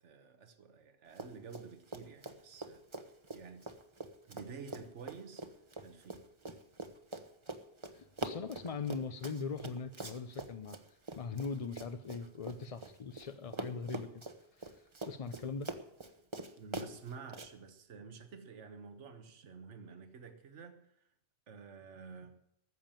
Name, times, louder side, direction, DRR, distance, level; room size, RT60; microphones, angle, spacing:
voice 1, 0.0-2.8 3.3-3.7 4.2-5.4 5.8-6.3 16.6-21.0 21.5-22.4, right 5 dB, 75° right, 1.5 m, -50 dB
Run, 1.1-1.7 1.9-13.3 13.5-17.5, right 2 dB, 25° right, 1.0 m, -44 dB
voice 2, 7.9-14.2 14.5-15.7, left 5 dB, 40° left, 0.5 m, -41 dB
14.0 x 7.3 x 8.9 m
omnidirectional pair, 1.2 m